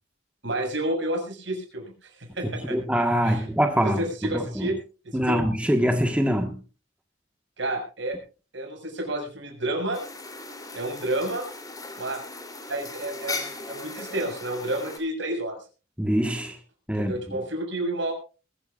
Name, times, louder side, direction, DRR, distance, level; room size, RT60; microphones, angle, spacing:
voice 1, 0.4-2.8 3.2-3.4 3.8-4.8 5.0-5.4 7.6-8.2 8.5-10.0 10.7-11.5 12.0-12.2 12.7-15.6 16.9-18.1, right 1 dB, 65° right, 6.5 m, -30 dB
voice 2, 2.7-4.7 5.1-6.6 16.0-16.6 16.9-17.4, equal, 5° right, 1.5 m, -24 dB
sound 1, 9.9-15.0, left 3 dB, 20° left, 3.4 m, -38 dB
22.0 x 15.0 x 2.5 m
head